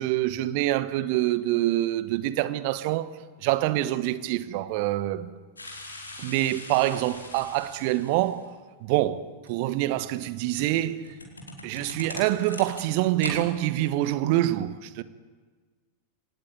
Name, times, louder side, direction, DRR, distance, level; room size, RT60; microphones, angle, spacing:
voice 1, 0.0-3.1 3.4-5.3 6.2-8.5 8.8-11.1 11.6-15.0, right 15 dB, 45° right, 1.2 m, -26 dB
sound 1, 5.6-8.4 9.4-13.4 13.7-13.8, left 2 dB, 80° left, 4.7 m, -41 dB
23.5 x 19.0 x 9.5 m
figure-of-eight pair, 90°, 0 cm